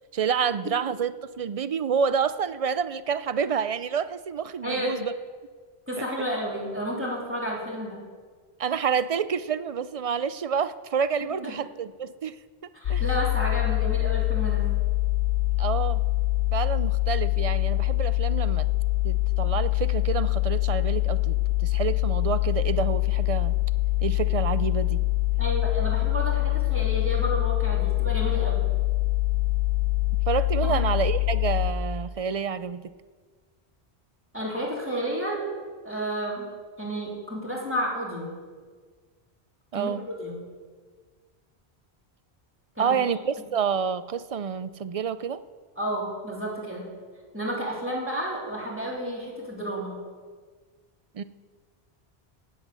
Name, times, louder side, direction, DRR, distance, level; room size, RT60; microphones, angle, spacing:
voice 1, 0.1-5.1 8.6-12.4 12.9-13.0 15.6-16.0 16.5-18.7 19.0-23.6 24.0-25.0 30.3-32.9 39.7-40.1 42.8-45.4 51.1-51.2, right 7 dB, 50° right, 14 dB, 0.4 m, -28 dB
voice 2, 4.6-5.0 5.9-8.0 11.4-11.5 12.7-14.7 25.4-28.6 30.7-30.8 34.3-35.4 35.8-36.5 36.8-38.3 39.7-40.4 42.8-43.0 45.8-46.9 47.3-49.9, equal, 10° right, -4 dB, 3.5 m, -31 dB
sound 1, 12.9-31.7, left 19 dB, 65° left, 0.8 m, -24 dB
17.5 x 8.5 x 6.9 m, 1.6 s
omnidirectional pair, 1.1 m